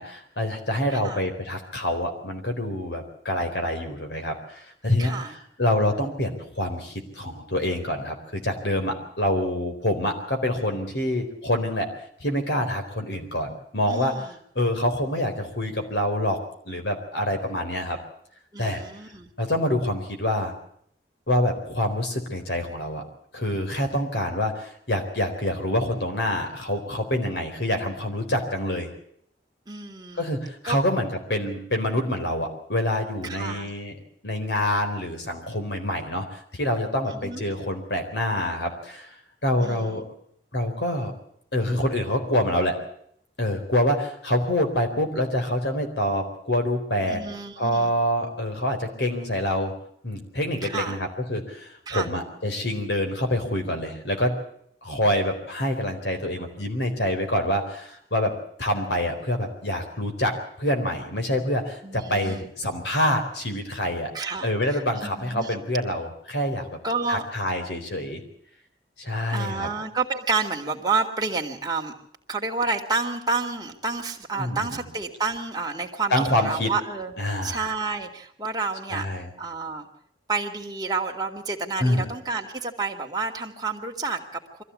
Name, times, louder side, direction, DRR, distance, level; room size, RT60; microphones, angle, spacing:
voice 1, 0.0-11.9 12.2-14.1 14.5-16.4 16.6-18.0 18.6-18.8 19.4-20.5 21.3-23.0 23.3-28.9 30.1-33.9 34.2-39.1 39.4-40.0 40.5-41.1 41.5-42.8 43.4-47.2 47.6-49.7 50.0-54.3 54.8-58.3 58.6-64.1 64.4-66.8 67.1-68.2 69.0-69.7 74.4-74.8 76.1-76.7 77.2-77.7 78.9-79.3 81.8-82.1, left 1 dB, 80° left, 5 dB, 4.1 m, -26 dB
voice 2, 0.9-1.2 5.0-5.4 13.9-14.4 18.5-19.3 29.7-30.3 30.6-30.8 33.2-33.7 37.1-37.4 39.6-40.0 47.1-47.9 50.6-51.0 51.9-52.1 61.8-62.5 64.1-65.6 66.8-67.3 69.3-71.9 72.3-79.1 79.4-79.9 80.3-84.6, right 4 dB, 25° right, 1 dB, 2.2 m, -30 dB
23.5 x 15.0 x 8.5 m, 0.67 s
head